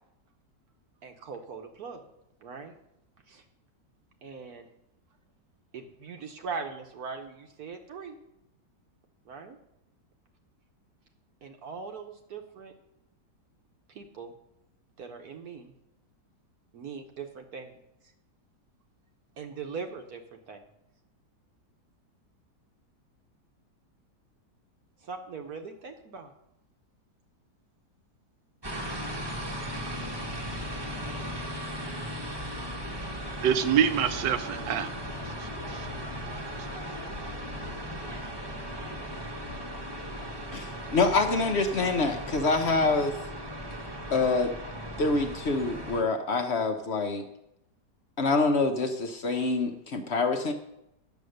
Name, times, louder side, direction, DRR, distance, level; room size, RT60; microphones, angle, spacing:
voice 1, 1.0-2.0 2.4-2.7 3.3-3.4 4.2-4.7 5.7-8.2 9.3-9.6 11.4-12.7 13.9-14.3 15.0-15.7 16.7-17.8 19.4-20.2 20.5-20.6 25.1-26.3 34.4-34.8, right 5 dB, 65° right, 4 dB, 1.3 m, -40 dB
sound 1, 28.6-46.0, equal, 15° right, 1.0 m, -37 dB
voice 2, 33.4-35.0 35.4-35.9, right 8 dB, 85° right, 10 dB, 1.3 m, -26 dB
voice 3, 40.5-43.2 44.1-44.5 45.0-47.2 48.2-50.5, left 3 dB, 50° left, 5 dB, 0.8 m, -26 dB
9.3 x 7.0 x 6.5 m, 0.85 s
omnidirectional pair, 1.9 m